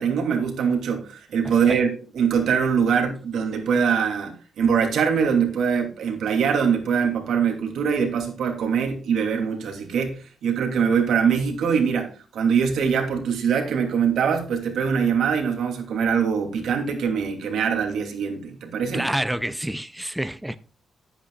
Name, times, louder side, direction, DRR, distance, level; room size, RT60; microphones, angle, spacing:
voice 1, 0.0-19.0, right 6 dB, 85° right, 2.8 m, -23 dB
voice 2, 18.9-20.6, right 1 dB, 5° right, 0.4 m, -27 dB
11.0 x 10.0 x 2.4 m
wide cardioid pair, 150°, 0 cm